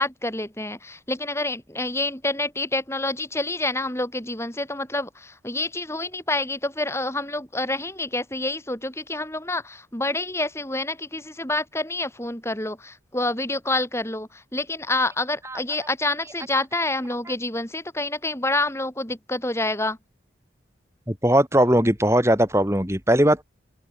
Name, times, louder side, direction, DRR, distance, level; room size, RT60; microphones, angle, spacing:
voice 1, 0.0-20.0, left 2 dB, 15° left, 7.2 m, -27 dB
voice 2, 21.1-23.4, right 1 dB, 15° right, 6.4 m, -19 dB
open air
head